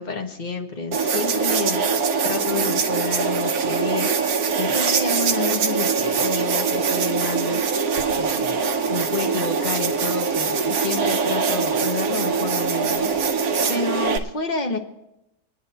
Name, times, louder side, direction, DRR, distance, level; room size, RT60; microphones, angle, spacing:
voice 1, 0.0-1.9 2.2-13.1 13.7-14.8, left 4 dB, 30° left, 2 dB, 1.1 m, -30 dB
sound 1, 0.9-14.2, right 5 dB, 70° right, 1.2 m, -23 dB
Wind instrument woodwind instrument, 3.7-7.8, right 9 dB, 35° right, 0.7 m, -34 dB
27.5 x 9.5 x 2.9 m, 0.89 s
omnidirectional pair, 1.8 m